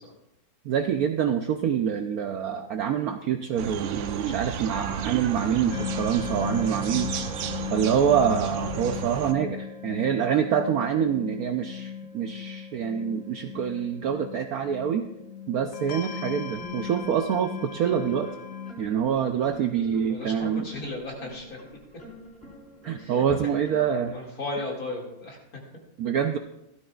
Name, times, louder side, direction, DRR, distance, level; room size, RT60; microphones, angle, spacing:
voice 1, 0.6-7.1 7.7-15.1 15.5-18.3 18.8-20.7 22.8-24.1 26.0-26.4, right 8 dB, 70° right, 6 dB, 0.9 m, -26 dB
sound 1, 3.6-9.3, right 8 dB, 85° right, 1.5 m, -33 dB
sound 2, 5.7-18.7, left 8 dB, 85° left, 1.6 m, -37 dB
sound 3, 16.4-24.2, left 1 dB, 5° left, 3.6 m, -47 dB
voice 2, 20.0-21.6 23.0-23.5 24.1-25.6, left 2 dB, 50° left, -1 dB, 2.7 m, -35 dB
16.0 x 12.5 x 2.4 m, 0.87 s
omnidirectional pair, 2.0 m